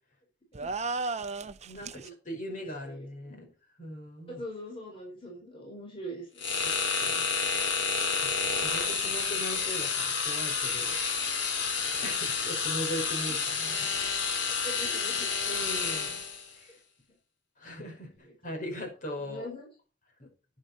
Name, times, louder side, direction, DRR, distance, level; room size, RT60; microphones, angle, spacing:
sound 1, 0.5-2.1, right 3 dB, 40° right, 0.7 m, -34 dB
voice 1, 1.6-3.4 3.8-4.4 6.6-6.7 7.0-7.2 8.2-10.9 12.0-13.9 15.5-16.2 16.5-16.8 17.6-19.5 20.2-20.3, equal, 45° left, 2 dB, 5.1 m, -39 dB
voice 2, 2.6-3.5 4.3-6.5 13.1-13.4 14.3-15.3 18.1-18.6 19.1-19.7, equal, 30° left, -1 dB, 4.4 m, -43 dB
sound 2, 6.4-16.5, left 5 dB, 90° left, 3.3 m, -30 dB
11.0 x 10.0 x 4.2 m, 0.34 s
head